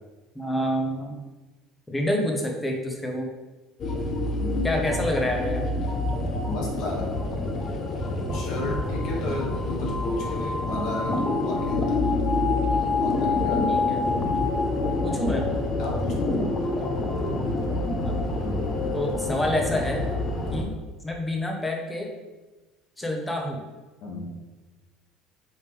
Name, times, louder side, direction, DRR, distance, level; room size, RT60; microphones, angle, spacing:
voice 1, 0.3-1.2 1.9-3.3 4.6-5.6 13.7-14.0 15.0-15.4 18.9-20.0 20.5-20.7 21.0-22.1 23.0-23.6, left 1 dB, 10° left, 1 dB, 1.2 m, -27 dB
sound 1, 3.8-20.6, left 2 dB, 40° left, 1.1 m, -26 dB
voice 2, 4.4-4.7 6.5-7.3 8.3-12.1 12.7-13.7 15.8-16.3 24.0-24.3, left 2 dB, 60° left, -1 dB, 1.9 m, -33 dB
7.9 x 5.2 x 3.4 m, 1.2 s
cardioid pair, 125°, 0 cm